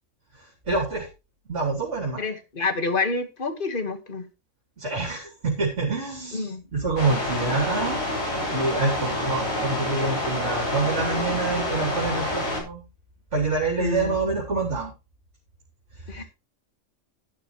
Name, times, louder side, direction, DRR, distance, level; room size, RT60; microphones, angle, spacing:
voice 1, 0.3-1.1 1.5-2.2 4.8-12.8 13.3-14.9 15.9-16.2, right 3 dB, 60° right, -1 dB, 3.4 m, -27 dB
voice 2, 2.2-4.3 6.3-6.6 13.8-14.1 16.1-16.2, left 3 dB, 40° left, 8 dB, 1.8 m, -28 dB
sound 1, 7.0-12.6, left 1 dB, 80° left, 7.3 m, -27 dB
11.5 x 11.5 x 3.2 m, 0.28 s
omnidirectional pair, 1.4 m